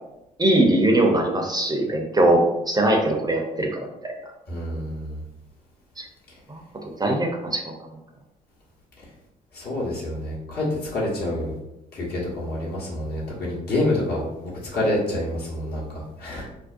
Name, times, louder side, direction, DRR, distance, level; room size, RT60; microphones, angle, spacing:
voice 1, 0.4-4.1 6.0-6.1 6.5-7.7, right 1 dB, 20° right, 1 dB, 0.5 m, -21 dB
voice 2, 4.5-5.2 9.5-10.6 10.9-11.5 11.9-16.5, left 1 dB, 60° left, -5 dB, 1.0 m, -27 dB
2.5 x 2.1 x 2.4 m, 0.92 s
hypercardioid pair, 50°, 19 cm